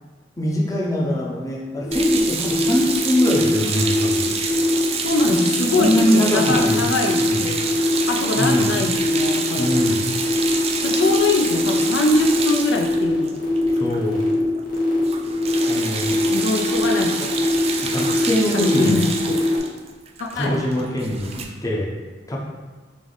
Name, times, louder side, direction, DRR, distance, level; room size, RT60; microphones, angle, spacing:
voice 1, 0.4-4.3 5.3-5.4 5.8-6.8 7.2-7.4 8.4-8.7 9.6-10.0 13.7-14.2 15.7-16.2 17.8-19.0 20.3-21.9 22.3-22.4, equal, 20° left, -3 dB, 0.6 m, -23 dB
sound 1, 1.8-19.6, left 2 dB, 55° left, 1.1 m, -22 dB
sound 2, 1.9-14.3 14.6-14.8 15.0-21.5, right 5 dB, 35° right, 0.3 m, -28 dB
voice 2, 5.0-7.7 8.1-9.7 10.8-13.4 16.3-17.4 18.5-19.5 20.2-20.6, left 2 dB, 75° left, 2 dB, 0.4 m, -23 dB
3.4 x 3.0 x 3.9 m, 1.3 s
head